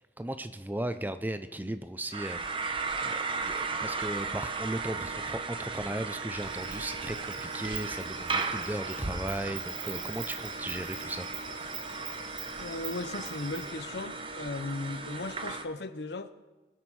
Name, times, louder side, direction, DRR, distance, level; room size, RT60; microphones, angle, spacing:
voice 1, 0.2-2.4 3.0-11.3, right 1 dB, 10° right, 10 dB, 0.4 m, -36 dB
sound 1, 2.1-15.6, right 4 dB, 30° right, 0.8 m, -36 dB
Insect, 6.3-13.7, right 6 dB, 50° right, 2.0 m, -44 dB
voice 2, 12.6-16.3, left 2 dB, 70° left, 12 dB, 0.8 m, -37 dB
22.5 x 7.8 x 4.7 m, 1.2 s
head